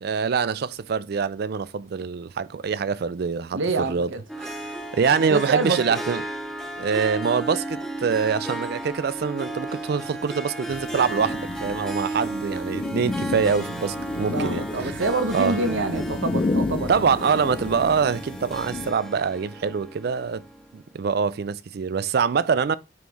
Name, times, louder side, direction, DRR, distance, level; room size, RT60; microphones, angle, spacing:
voice 1, 0.0-3.6 3.9-4.1 4.4-6.2 6.8-15.0 15.3-15.6 16.9-20.5 20.7-22.8, right 6 dB, 55° right, 0.4 m, -25 dB
voice 2, 3.5-4.2 5.2-5.8 14.3-16.9, right 3 dB, 80° right, 0.9 m, -26 dB
Harp, 4.3-20.8, right 1 dB, ahead, 0.7 m, -34 dB
sound 1, 10.7-18.9, left 3 dB, 25° left, 0.3 m, -31 dB
9.2 x 3.1 x 3.5 m
head